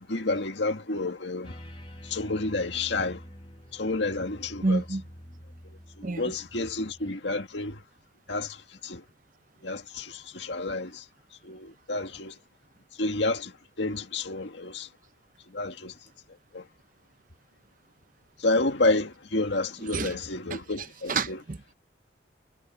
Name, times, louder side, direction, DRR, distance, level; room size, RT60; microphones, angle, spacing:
voice 1, 0.0-1.6 2.0-3.2 3.7-4.8 6.0-7.8 8.3-9.0 9.6-11.0 11.4-12.4 13.0-13.5 13.8-14.9 15.5-15.9 16.5-16.6 18.4-21.4, left 2 dB, 70° left, 2.0 m, -30 dB
sound 1, 1.4-7.1, equal, 25° left, 2.1 m, -47 dB
voice 2, 4.6-5.0 6.0-6.2 19.9-20.1 20.5-20.6 21.1-21.7, right 3 dB, 45° right, 0.8 m, -28 dB
head